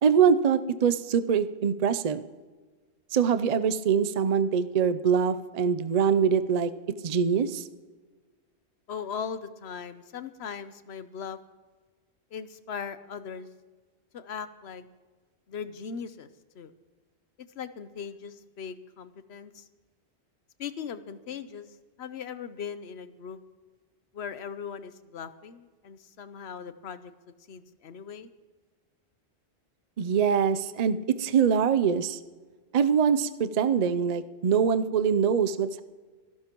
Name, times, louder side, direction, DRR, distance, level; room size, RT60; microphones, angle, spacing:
voice 1, 0.0-2.2 3.1-6.7 7.0-7.6 30.0-32.2 32.7-35.8, right 7 dB, 45° right, 12 dB, 0.6 m, -24 dB
voice 2, 8.9-11.4 12.3-13.5 14.1-14.8 15.5-16.3 16.5-16.7 17.6-19.7 20.6-21.7 22.0-23.4 24.1-27.1 27.5-28.3, left 7 dB, 75° left, 12 dB, 1.0 m, -39 dB
26.0 x 12.0 x 3.0 m, 1.4 s
omnidirectional pair, 1.1 m